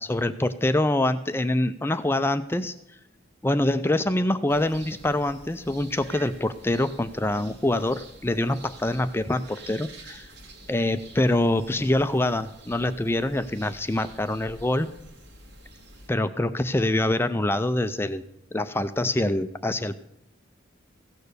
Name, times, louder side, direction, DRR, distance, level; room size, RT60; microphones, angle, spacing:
voice 1, 0.0-3.0 3.4-10.3 10.7-14.9 16.1-20.0, left 1 dB, 10° left, 11 dB, 0.4 m, -25 dB
sound 1, 4.5-16.1, right 2 dB, 55° right, 1.8 m, -48 dB
16.0 x 6.7 x 6.6 m, 0.86 s
head